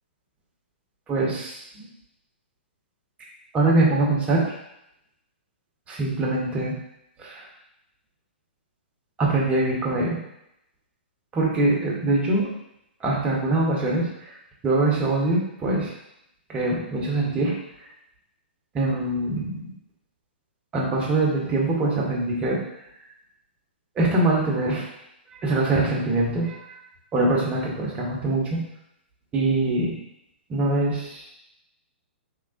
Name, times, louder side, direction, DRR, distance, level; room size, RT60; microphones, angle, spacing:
voice 1, 1.1-1.9 3.5-4.4 5.9-6.8 7.2-7.5 9.2-10.2 11.3-12.5 13.0-14.1 14.6-15.9 16.5-17.6 18.7-19.7 20.7-22.6 24.0-24.8 25.4-26.7 27.1-28.6 29.3-29.9 30.5-31.3, right 2 dB, 20° right, -4 dB, 1.0 m, -23 dB
3.5 x 3.0 x 2.5 m, 0.82 s
hypercardioid pair, 125°, 6 cm